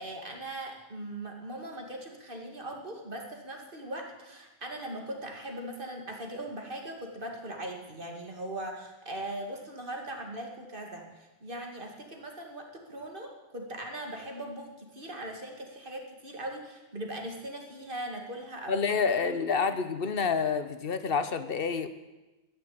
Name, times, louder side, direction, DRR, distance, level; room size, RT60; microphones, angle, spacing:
voice 1, 0.0-19.6, right 1 dB, 35° right, 2 dB, 2.3 m, -40 dB
voice 2, 18.7-21.9, left 5 dB, 45° left, 11 dB, 1.0 m, -28 dB
12.5 x 10.5 x 8.6 m, 1.1 s
omnidirectional pair, 1.6 m